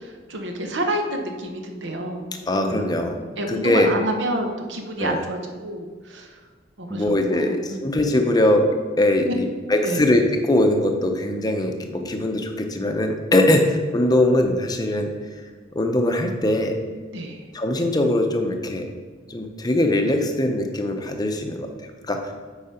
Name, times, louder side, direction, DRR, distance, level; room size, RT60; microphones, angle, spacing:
voice 1, 0.3-2.3 2.6-2.8 3.4-5.9 6.1-6.3 6.8-7.5 9.8-10.0 17.1-17.4, right 1 dB, 70° right, 3 dB, 0.9 m, -28 dB
voice 2, 2.5-3.2 3.5-3.9 5.0-5.2 6.9-8.7 9.0-15.4 15.7-16.8 17.5-18.9 19.3-22.3, left 1 dB, 20° left, 4 dB, 0.7 m, -21 dB
8.6 x 4.9 x 4.3 m, 1.5 s
head